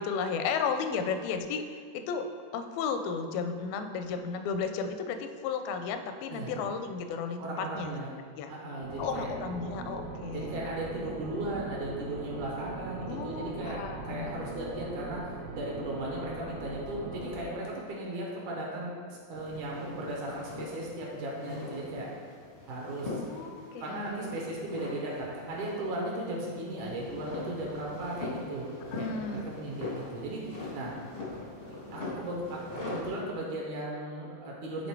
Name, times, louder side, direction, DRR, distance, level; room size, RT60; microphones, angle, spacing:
voice 1, 0.0-1.6 1.9-7.9 8.4-8.5 9.0-10.6 13.1-14.4 23.1-24.3 28.9-29.4, left 5 dB, 85° left, 8 dB, 2.4 m, -34 dB
voice 2, 6.3-6.6 7.4-8.2 8.5-9.3 10.3-13.8 14.0-22.1 22.7-23.1 23.4-28.7 29.0-30.9 31.7-34.9, right 1 dB, 70° right, -3 dB, 2.3 m, -37 dB
sound 1, 8.8-17.5, right 3 dB, 90° right, 2.9 m, -41 dB
sound 2, 19.3-33.2, left 2 dB, 60° left, 0.6 m, -42 dB
9.9 x 3.8 x 4.5 m, 2.1 s
omnidirectional pair, 4.1 m